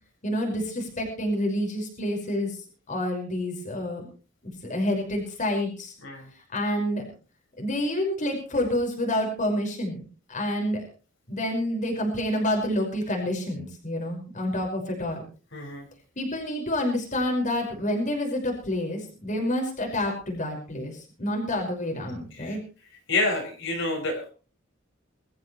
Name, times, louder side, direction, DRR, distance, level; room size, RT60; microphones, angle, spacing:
voice 1, 0.2-2.6 2.9-4.1 4.4-5.9 6.5-7.1 7.6-10.0 10.3-10.8 11.3-15.2 16.2-22.6, left 1 dB, 40° left, 1 dB, 5.7 m, -28 dB
voice 2, 15.5-15.9 22.3-22.6 23.1-24.3, left 2 dB, 70° left, 1 dB, 6.1 m, -28 dB
22.5 x 14.5 x 3.3 m, 0.37 s
head